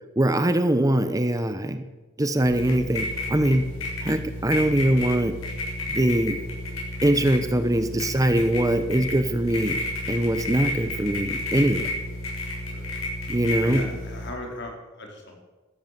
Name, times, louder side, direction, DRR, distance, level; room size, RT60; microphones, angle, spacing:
voice 1, 0.2-1.8 2.2-3.6 4.0-5.3 5.9-6.4 7.0-11.9 13.3-13.9, right 1 dB, 15° right, 9 dB, 0.9 m, -22 dB
sound 1, 2.4-14.3, left 1 dB, 85° left, 7.0 m, -31 dB
voice 2, 13.5-15.5, left 1 dB, 55° left, 2 dB, 4.3 m, -38 dB
13.5 x 13.5 x 7.5 m, 1.2 s
head